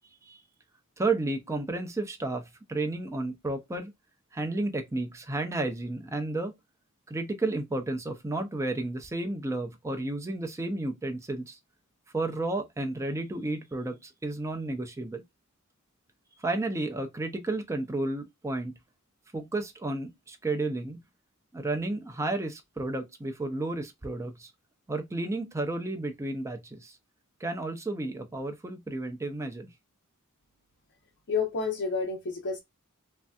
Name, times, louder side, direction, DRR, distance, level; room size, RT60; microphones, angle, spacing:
voice 1, 1.0-3.9 4.3-6.5 7.1-11.6 12.1-15.2 16.4-18.7 19.3-21.0 21.5-24.5 24.9-27.0 27.4-29.7, right 2 dB, 15° right, 0.4 m, -32 dB
voice 2, 31.3-32.6, left 5 dB, 55° left, 0.7 m, -29 dB
3.2 x 2.6 x 2.3 m
head